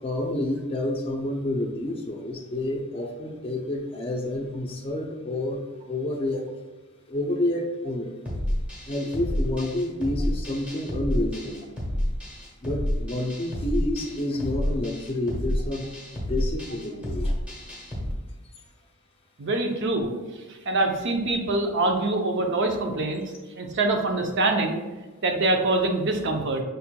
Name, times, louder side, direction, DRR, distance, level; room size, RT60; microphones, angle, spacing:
voice 1, 0.0-6.5 7.1-8.1 8.9-11.7 12.6-15.9 16.1-17.4, left 1 dB, 25° left, -1 dB, 0.5 m, -29 dB
sound 1, 8.3-18.1, equal, 5° right, 1.0 m, -29 dB
voice 2, 19.4-20.1 20.7-23.2 23.6-24.8 25.2-26.6, right 2 dB, 55° right, 3 dB, 0.6 m, -24 dB
5.3 x 4.3 x 2.2 m, 1.2 s
head